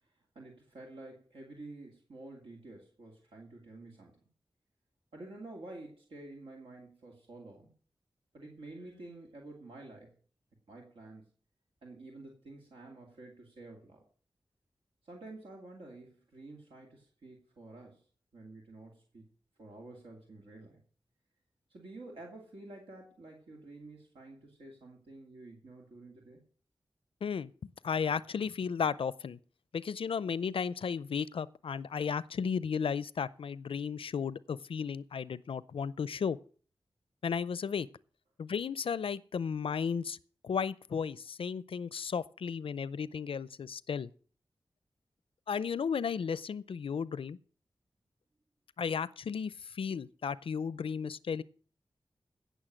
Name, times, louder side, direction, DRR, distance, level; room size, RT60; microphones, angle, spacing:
voice 1, 0.3-4.1 5.1-7.7 8.3-10.1 10.7-11.2 11.8-14.0 15.0-18.1 18.3-19.3 19.6-20.8 21.7-26.4, right 2 dB, 90° right, 2.5 m, -50 dB
voice 2, 27.2-27.5 27.8-29.4 29.7-36.4 37.2-37.9 38.4-40.2 40.4-44.1 45.5-47.4 48.8-51.4, left 6 dB, 80° left, 0.5 m, -34 dB
16.5 x 6.5 x 6.3 m
cardioid pair, 60°, 9 cm